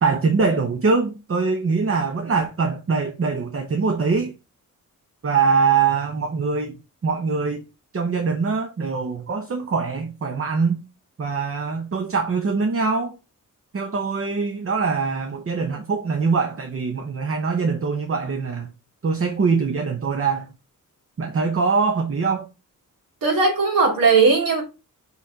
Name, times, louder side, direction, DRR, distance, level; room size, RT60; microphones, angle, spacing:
voice 1, 0.0-4.3 5.2-6.7 7.0-7.6 7.9-10.8 11.2-13.1 13.7-18.7 19.0-20.5 21.2-22.5, right 4 dB, 40° right, 0.9 m, -23 dB
voice 2, 23.2-24.6, right 4 dB, 85° right, 2.4 m, -17 dB
5.6 x 4.1 x 4.5 m
cardioid pair, 90°, 33 cm